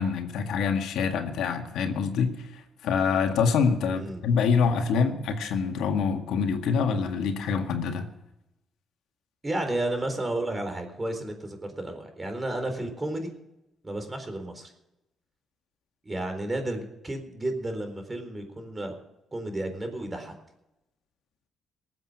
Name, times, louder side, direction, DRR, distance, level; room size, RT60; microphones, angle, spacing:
voice 1, 0.0-2.3 2.8-8.1, left 6 dB, 80° left, 4 dB, 1.8 m, -25 dB
voice 2, 3.9-4.2 9.4-13.3 13.8-14.7 16.0-18.9 19.3-20.4, right 1 dB, 20° right, 6 dB, 4.0 m, -32 dB
19.5 x 8.0 x 7.9 m, 0.91 s
cardioid pair, 90°, 0 cm